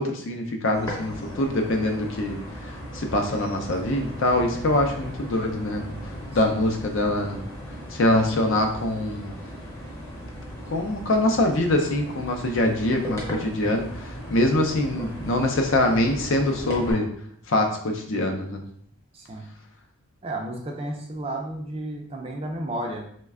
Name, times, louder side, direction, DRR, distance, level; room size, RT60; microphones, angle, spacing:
voice 1, 0.0-2.4 2.9-5.8 6.3-7.4 7.9-9.3 10.6-17.1 17.5-18.6, left 1 dB, 65° left, 4 dB, 0.5 m, -24 dB
sound 1, 0.7-16.9, equal, 15° left, 0.7 m, -37 dB
voice 2, 19.1-19.5 20.2-23.0, right 1 dB, 25° right, 2 dB, 0.4 m, -32 dB
3.2 x 2.2 x 3.5 m, 0.64 s
head